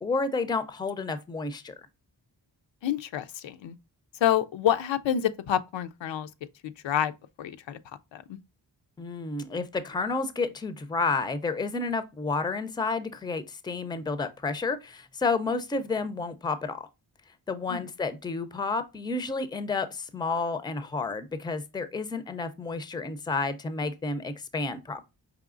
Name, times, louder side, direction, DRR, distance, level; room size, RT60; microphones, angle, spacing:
voice 1, 0.0-1.7 9.0-16.9 17.5-25.0, left 4 dB, 10° left, 0.4 m, -30 dB
voice 2, 2.8-3.7 4.2-6.3 6.6-7.1 7.4-7.8 8.1-8.4 17.7-17.9, left 10 dB, 90° left, 0.5 m, -28 dB
4.9 x 3.0 x 2.4 m
wide cardioid pair, 110°, 43 cm